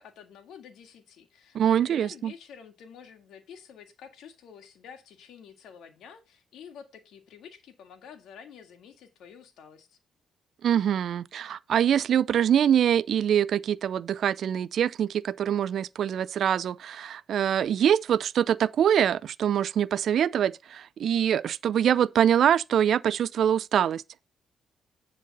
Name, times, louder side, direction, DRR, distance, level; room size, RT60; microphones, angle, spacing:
voice 1, 0.0-10.0, left 7 dB, 80° left, 1.9 m, -49 dB
voice 2, 1.5-2.3 10.6-24.0, right 9 dB, 65° right, 0.4 m, -24 dB
10.5 x 4.0 x 5.3 m
cardioid pair, 90°, 0 cm